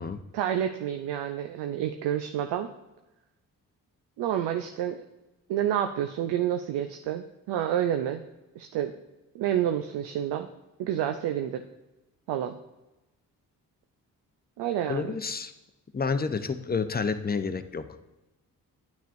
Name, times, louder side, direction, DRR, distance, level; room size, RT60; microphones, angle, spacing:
voice 1, 0.3-2.7 4.2-5.0 5.5-8.2 8.6-8.9 9.3-10.5 10.8-11.6 12.3-12.5 14.6-15.2, right 10 dB, 75° right, 6 dB, 0.6 m, -29 dB
voice 2, 14.9-15.5 15.9-17.9, left 5 dB, 25° left, 10 dB, 0.7 m, -29 dB
9.4 x 9.1 x 2.5 m, 1.0 s
hypercardioid pair, 40°, 41 cm